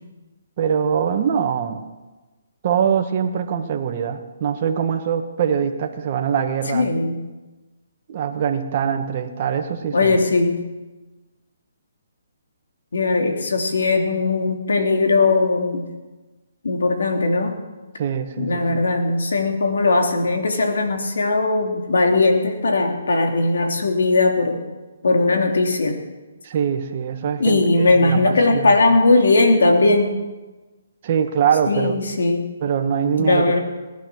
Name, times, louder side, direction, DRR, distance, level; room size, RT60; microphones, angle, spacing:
voice 1, 0.6-1.9 2.6-6.9 8.1-10.2 18.0-18.8 26.4-27.6 28.0-28.7 31.0-32.0 32.6-33.6, right 7 dB, 40° right, 5 dB, 1.5 m, -23 dB
voice 2, 6.7-7.2 9.9-10.6 12.9-15.9 16.6-17.6 18.4-24.6 25.0-26.0 27.4-30.2 31.7-32.5 33.2-33.6, left 3 dB, 80° left, 4 dB, 3.0 m, -19 dB
18.5 x 11.5 x 6.3 m, 1.2 s
hypercardioid pair, 160°, 0 cm